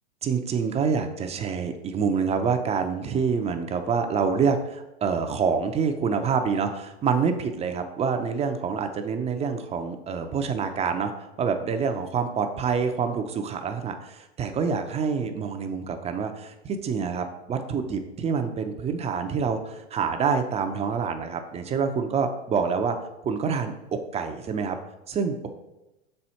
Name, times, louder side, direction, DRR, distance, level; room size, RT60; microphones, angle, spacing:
voice 1, 0.2-23.0 23.2-24.8 25.1-25.5, right 6 dB, 20° right, 7 dB, 0.5 m, -27 dB
6.0 x 4.4 x 4.2 m, 0.98 s
hypercardioid pair, 110°, 33 cm